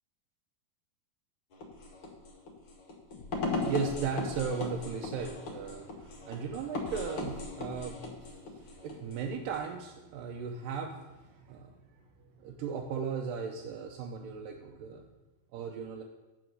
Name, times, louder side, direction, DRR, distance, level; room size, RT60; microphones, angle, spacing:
sound 1, 1.5-9.7, left 3 dB, 60° left, 1.4 m, -38 dB
voice 1, 3.3-11.7 12.4-15.1 15.5-16.0, right 6 dB, 75° right, 1 dB, 2.2 m, -37 dB
8.7 x 7.1 x 6.2 m, 1.1 s
omnidirectional pair, 4.3 m